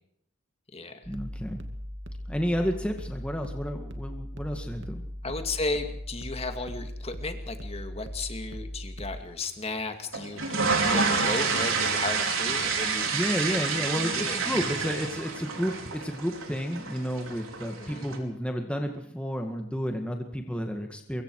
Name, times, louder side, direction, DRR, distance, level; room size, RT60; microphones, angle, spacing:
sound 1, 1.0-9.2, equal, 60° right, 2.6 m, -39 dB
voice 1, 1.1-1.6 2.3-5.0 13.1-21.2, equal, 5° left, 3 dB, 1.9 m, -31 dB
voice 2, 5.2-13.1 13.9-14.4 17.8-18.1, left 3 dB, 30° left, 7 dB, 2.3 m, -34 dB
sound 2, 10.1-18.2, right 4 dB, 75° right, 5.2 m, -28 dB
25.0 x 23.0 x 4.9 m, 0.68 s
head